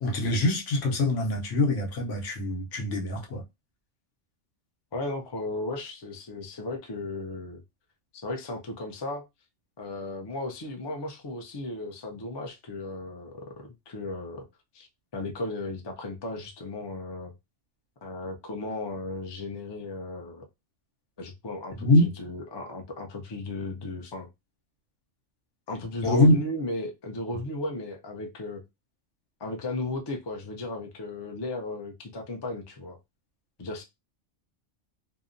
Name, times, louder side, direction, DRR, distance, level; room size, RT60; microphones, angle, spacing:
voice 1, 0.0-3.4 21.8-22.0 26.0-26.4, left 1 dB, 80° left, 1.1 m, -23 dB
voice 2, 4.9-7.6 8.1-9.2 9.8-14.4 14.7-14.9 15.1-17.3 18.0-20.5 21.2-24.3 25.7-28.6 29.4-33.0 33.6-33.8, left 2 dB, 40° left, 0.3 m, -35 dB
2.7 x 2.1 x 2.5 m
omnidirectional pair, 1.3 m